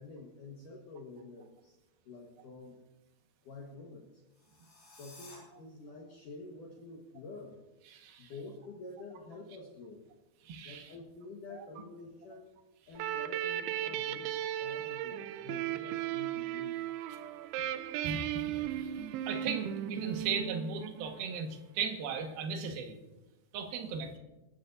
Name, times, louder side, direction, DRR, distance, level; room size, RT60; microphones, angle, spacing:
voice 1, 0.0-1.8 2.1-2.8 3.4-4.2 5.0-7.6 8.2-10.1 10.6-12.5 12.9-16.8, left 3 dB, 60° left, -1 dB, 2.5 m, -48 dB
sound 1, 4.3-5.4, left 2 dB, 45° left, 6.5 m, -54 dB
voice 2, 7.9-8.3 10.4-10.9 18.0-23.0 23.5-24.2, right 5 dB, 65° right, 3 dB, 3.1 m, -37 dB
sound 2, 13.0-21.4, right 12 dB, 80° right, 2.4 m, -36 dB
27.0 x 13.0 x 2.7 m, 1.0 s
omnidirectional pair, 5.0 m